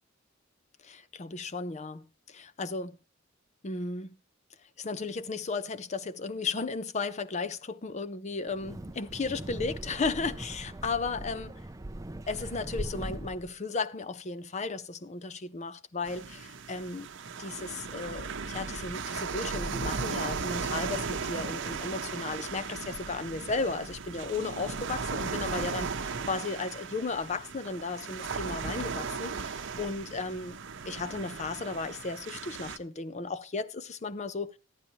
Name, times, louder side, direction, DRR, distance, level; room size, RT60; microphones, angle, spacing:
voice 1, 0.8-3.0 3.6-4.2 4.8-11.6 12.3-17.1 17.4-25.9 26.3-30.6 30.9-34.5, left 4 dB, 35° left, 0.6 m, -35 dB
Wind, 8.5-13.5, right 1 dB, 15° right, 0.5 m, -40 dB
sound 1, 16.0-32.8, right 5 dB, 60° right, 0.8 m, -36 dB
14.0 x 11.0 x 2.8 m
head